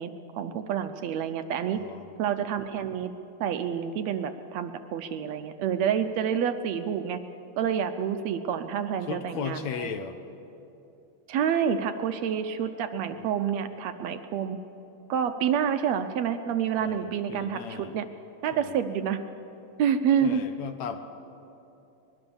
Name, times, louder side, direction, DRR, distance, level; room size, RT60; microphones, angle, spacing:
voice 1, 0.0-1.8 2.2-3.1 3.4-7.2 7.6-9.9 11.3-14.6 15.1-18.1 18.4-19.2 19.8-20.4, right 8 dB, 75° right, 8 dB, 1.8 m, -28 dB
voice 2, 1.7-2.1 9.1-10.2 13.1-13.4 16.8-18.0 18.5-18.9 20.2-21.0, left 7 dB, 70° left, 8 dB, 2.2 m, -36 dB
24.0 x 20.5 x 7.0 m, 2.8 s
omnidirectional pair, 3.5 m